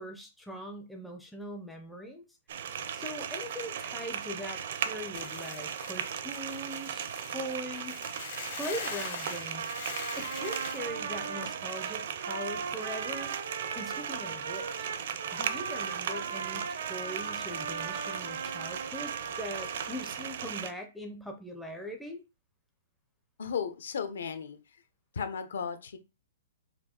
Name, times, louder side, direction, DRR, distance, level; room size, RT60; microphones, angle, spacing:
voice 1, 0.0-2.2 2.9-8.0 8.5-9.7 10.1-13.3 13.8-14.9 15.3-22.2, equal, ahead, 1 dB, 0.5 m, -41 dB
sound 1, 2.5-20.7, right 8 dB, 50° right, 0.5 m, -37 dB
Hiss / Boiling, 5.1-10.8, left 8 dB, 40° left, 0.8 m, -43 dB
Trumpet, 9.4-20.2, right 6 dB, 80° right, 0.8 m, -39 dB
voice 2, 23.4-24.6 25.1-26.0, left 6 dB, 70° left, 8 dB, 0.8 m, -35 dB
4.4 x 2.6 x 4.3 m, 0.28 s
hypercardioid pair, 170°, 0 cm